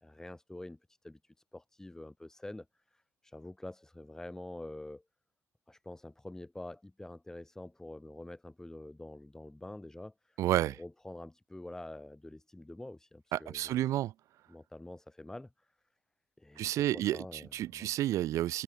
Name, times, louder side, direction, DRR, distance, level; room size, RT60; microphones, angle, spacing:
voice 1, 0.0-5.0 5.7-10.4 10.6-13.8 14.5-15.7 16.4-17.9, left 1 dB, 10° left, 1.6 m, -47 dB
voice 2, 10.4-10.8 13.3-14.1 16.6-18.6, right 13 dB, 70° right, 0.6 m, -31 dB
cardioid pair, 95°, 6 cm